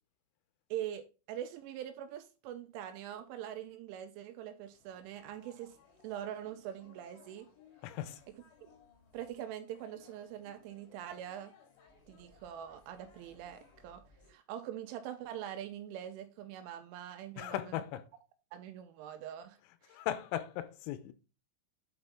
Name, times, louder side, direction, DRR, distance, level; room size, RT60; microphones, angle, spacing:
voice 1, 0.7-5.8 6.0-7.5 9.1-11.5 12.1-17.8 18.5-19.6 19.8-20.0, right 11 dB, 85° right, 2.9 m, -43 dB
sound 1, 4.7-14.3, left 5 dB, 70° left, 5.1 m, -63 dB
voice 2, 7.8-8.2 17.4-18.1 19.9-21.1, left 12 dB, 90° left, 3.4 m, -37 dB
8.8 x 4.4 x 3.4 m
omnidirectional pair, 5.8 m